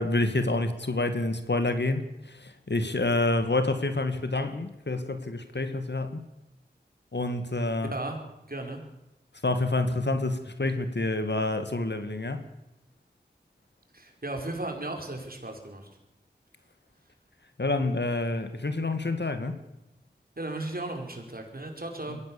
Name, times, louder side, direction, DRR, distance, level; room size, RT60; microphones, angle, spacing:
voice 1, 0.0-6.2 7.1-7.9 9.4-12.4 17.6-19.6, left 2 dB, 75° left, 9 dB, 2.2 m, -28 dB
voice 2, 7.6-8.2 8.5-8.8 13.9-15.9 20.4-22.2, right 2 dB, 55° right, 3 dB, 4.7 m, -35 dB
22.5 x 16.0 x 7.2 m, 0.92 s
wide cardioid pair, 40°, 18 cm